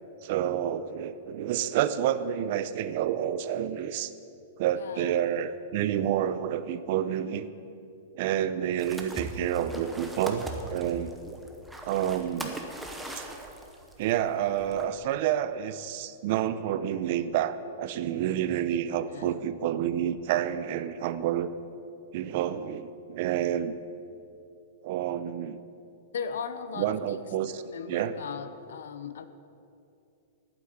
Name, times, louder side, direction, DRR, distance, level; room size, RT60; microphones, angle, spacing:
voice 1, 0.2-4.1 4.6-7.5 8.2-11.1 11.9-12.6 13.1-13.3 14.0-21.5 22.1-23.7 24.8-25.6 26.8-27.6 27.9-28.1, right 10 dB, 40° right, 13 dB, 0.6 m, -29 dB
voice 2, 4.8-5.1 19.1-19.3 26.1-29.3, left 6 dB, 85° left, 11 dB, 0.8 m, -38 dB
sound 1, 8.8-14.9, right 1 dB, 5° right, 0.9 m, -40 dB
11.5 x 8.9 x 8.9 m, 2.6 s
supercardioid pair, 175°, 0 cm